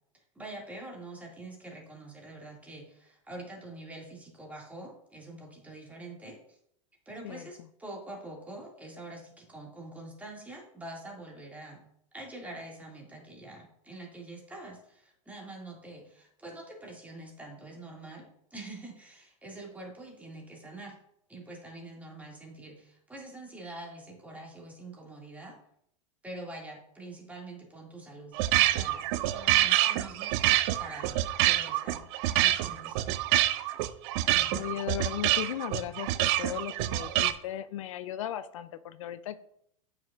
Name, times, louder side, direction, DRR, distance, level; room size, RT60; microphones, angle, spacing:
voice 1, 0.1-6.6 7.1-11.8 12.1-21.0 21.3-25.6 26.2-32.0 32.4-33.2 34.2-34.6, right 2 dB, 10° right, -2 dB, 2.1 m, -45 dB
sound 1, 28.3-37.3, right 14 dB, 55° right, 0.5 m, -26 dB
voice 2, 34.5-39.4, left 11 dB, 75° left, 13 dB, 0.4 m, -36 dB
8.8 x 5.6 x 2.4 m, 0.70 s
hypercardioid pair, 105°, 17 cm